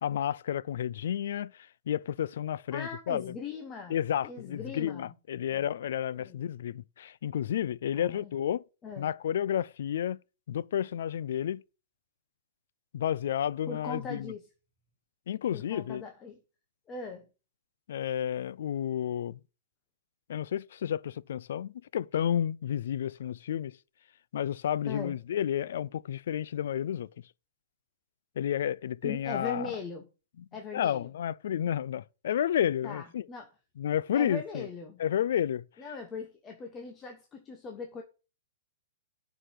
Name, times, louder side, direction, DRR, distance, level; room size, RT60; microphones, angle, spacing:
voice 1, 0.0-3.3 3.9-8.6 9.0-10.2 10.5-11.6 12.9-14.3 15.3-16.0 17.9-19.4 20.3-23.8 24.3-27.1 28.4-29.7 30.4-30.5 30.7-33.2 33.8-34.7 35.0-35.6, left 10 dB, 65° left, 0.4 m, -31 dB
voice 2, 2.7-4.0 4.2-5.1 5.5-5.6 6.2-6.4 7.9-8.3 8.8-9.1 13.7-14.4 15.5-16.4 16.9-17.3 24.9-25.2 29.0-30.1 30.5-31.1 32.8-33.5 34.1-35.0 35.8-38.0, left 4 dB, 15° left, 1.1 m, -40 dB
10.0 x 5.0 x 5.8 m
hypercardioid pair, 165°, 0 cm